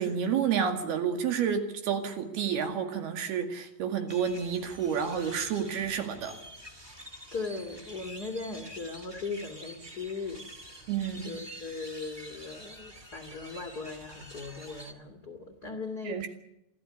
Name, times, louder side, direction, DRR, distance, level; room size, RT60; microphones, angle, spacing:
voice 1, 0.0-6.4 10.9-11.3 16.0-16.3, right 7 dB, 65° right, 6 dB, 4.0 m, -30 dB
sound 1, 4.1-14.9, equal, 25° right, 0.5 m, -48 dB
voice 2, 7.3-10.9 11.2-16.3, left 4 dB, 45° left, 5 dB, 1.2 m, -38 dB
26.5 x 13.5 x 9.7 m, 0.83 s
omnidirectional pair, 5.1 m